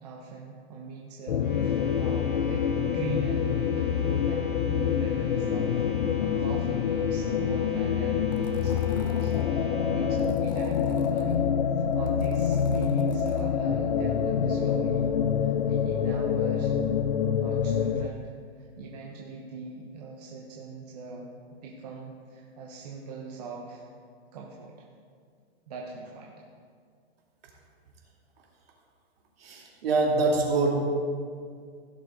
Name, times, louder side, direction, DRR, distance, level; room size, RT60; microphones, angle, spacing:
voice 1, 0.0-5.9 6.2-11.4 11.8-15.1 15.4-16.8 17.4-18.3 18.6-21.3 21.6-23.8 24.3-24.9 25.7-26.3, right 4 dB, 40° right, -2 dB, 1.1 m, -41 dB
sound 1, 1.3-18.1, left 7 dB, 65° left, 0.6 m, -26 dB
sound 2, 1.4-10.2, left 2 dB, 50° left, 1.7 m, -45 dB
sound 3, 8.3-9.4 10.2-11.3 11.9-13.5, left 5 dB, 20° left, 0.5 m, -43 dB
voice 2, 29.4-31.0, right 3 dB, 65° right, -1 dB, 2.6 m, -25 dB
16.0 x 6.8 x 3.9 m, 2.1 s
hypercardioid pair, 170°, 32 cm